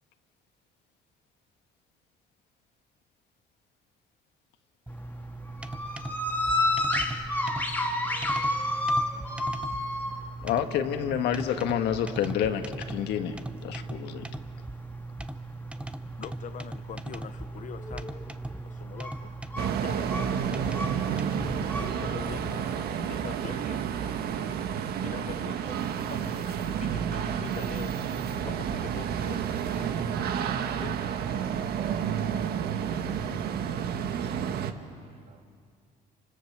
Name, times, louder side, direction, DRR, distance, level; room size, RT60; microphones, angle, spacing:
sound 1, 4.9-23.0, left 1 dB, 10° left, 2.4 m, -32 dB
sound 2, 4.9-22.8, right 2 dB, 5° right, 1.0 m, -39 dB
voice 1, 10.4-13.4 13.6-14.2, left 10 dB, 80° left, 1.8 m, -28 dB
voice 2, 16.2-18.2 18.8-19.3 19.8-20.5 21.8-24.5 25.0-25.6 26.1-26.4 26.8-28.0 28.4-29.9 30.8-31.0, left 9 dB, 50° left, 0.7 m, -43 dB
sound 3, 19.6-34.7, right 8 dB, 65° right, 1.5 m, -30 dB
voice 3, 25.4-26.5 34.9-35.5, right 5 dB, 45° right, 2.7 m, -50 dB
29.0 x 25.5 x 6.9 m
cardioid pair, 110°, 17 cm